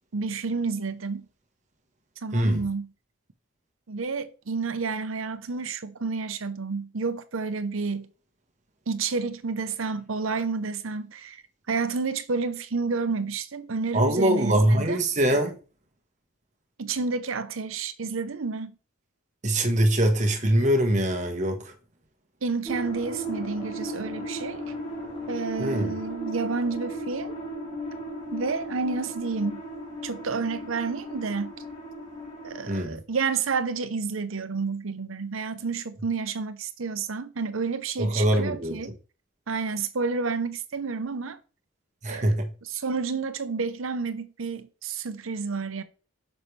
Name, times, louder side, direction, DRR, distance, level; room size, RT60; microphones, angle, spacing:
voice 1, 0.1-1.3 2.2-2.9 3.9-8.1 8.9-11.4 11.7-15.0 16.8-18.7 22.4-24.7 25.3-27.4 28.3-29.6 30.0-31.5 32.4-38.9 39.5-41.4 42.1-45.8, right 4 dB, 80° right, 0.8 m, -30 dB
voice 2, 2.3-2.6 13.9-15.5 19.4-21.7 25.6-25.9 32.7-33.0 38.0-38.8 42.0-42.5, right 1 dB, 35° right, 1.2 m, -23 dB
sound 1, 22.6-32.8, right 1 dB, 30° left, 3.6 m, -36 dB
9.3 x 6.6 x 3.2 m
head